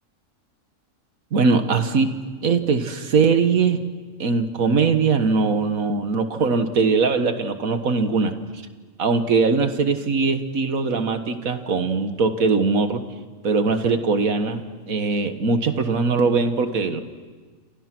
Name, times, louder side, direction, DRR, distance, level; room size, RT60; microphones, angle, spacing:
voice 1, 1.3-3.8 4.2-8.4 9.0-13.0 13.4-17.0, right 4 dB, 85° right, 8 dB, 1.9 m, -21 dB
28.5 x 28.0 x 6.1 m, 1.4 s
omnidirectional pair, 1.4 m